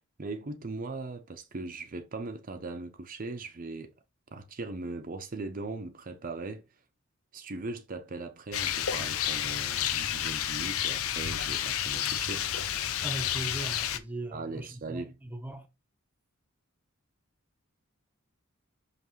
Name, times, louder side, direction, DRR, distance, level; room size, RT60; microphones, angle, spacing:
voice 1, 0.2-3.9 4.3-6.6 7.3-12.5 14.3-15.1, right 3 dB, 40° right, 0.6 m, -39 dB
Rain, 8.5-14.0, left 10 dB, 80° left, 0.7 m, -30 dB
voice 2, 13.0-15.7, right 2 dB, 10° right, 0.9 m, -39 dB
5.8 x 5.5 x 3.1 m
head